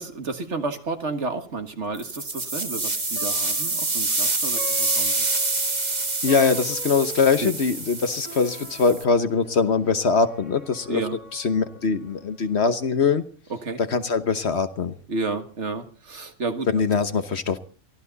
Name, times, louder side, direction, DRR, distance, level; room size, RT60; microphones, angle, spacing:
voice 1, 0.0-5.3 7.4-7.5 10.9-11.2 13.5-13.8 15.1-16.7, right 3 dB, 55° right, 8 dB, 1.9 m, -31 dB
sound 1, 1.9-9.0, right 3 dB, 30° right, 2.0 m, -27 dB
Plucked string instrument, 3.0-12.4, left 2 dB, 75° left, 4.3 m, -42 dB
voice 2, 6.2-11.0 11.3-13.2 13.9-15.0 16.7-17.6, left 5 dB, 50° left, 10 dB, 1.3 m, -22 dB
23.5 x 15.0 x 4.0 m, 0.38 s
omnidirectional pair, 1.5 m